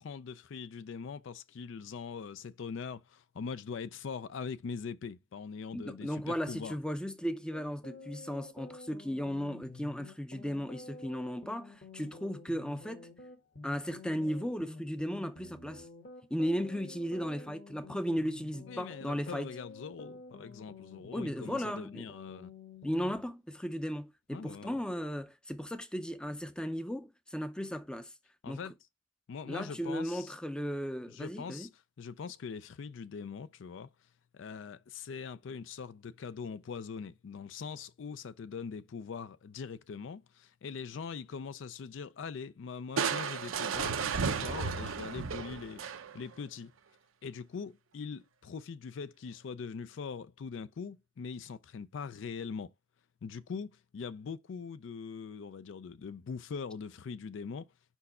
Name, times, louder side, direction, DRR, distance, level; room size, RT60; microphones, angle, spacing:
voice 1, 0.0-6.8 18.7-22.5 24.3-24.7 28.4-28.7 29.3-30.3 31.1-31.7 32.0-33.9 34.3-45.8 46.1-46.7 47.2-52.7 53.2-57.7, left 5 dB, 65° left, 0.4 m, -42 dB
voice 2, 5.7-13.1 13.6-15.9 16.3-19.5 21.1-22.1 22.8-28.1 28.5-28.6 29.5-31.7, equal, 5° left, 0.5 m, -36 dB
sound 1, 7.5-23.1, left 3 dB, 45° left, 1.4 m, -50 dB
Crushing, 43.0-46.3, right 6 dB, 80° right, 0.6 m, -33 dB
5.3 x 4.5 x 4.1 m
head